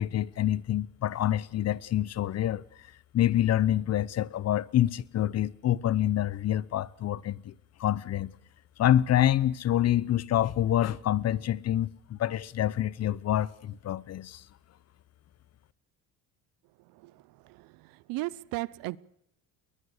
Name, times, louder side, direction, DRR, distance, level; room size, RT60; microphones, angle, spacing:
voice 1, 0.0-2.6 3.1-7.5 7.8-8.3 8.8-14.4, left 12 dB, 45° left, 0.9 m, -27 dB
voice 2, 18.1-19.0, right 20 dB, 80° right, 0.9 m, -34 dB
21.0 x 21.0 x 6.6 m
cardioid pair, 105°, 34 cm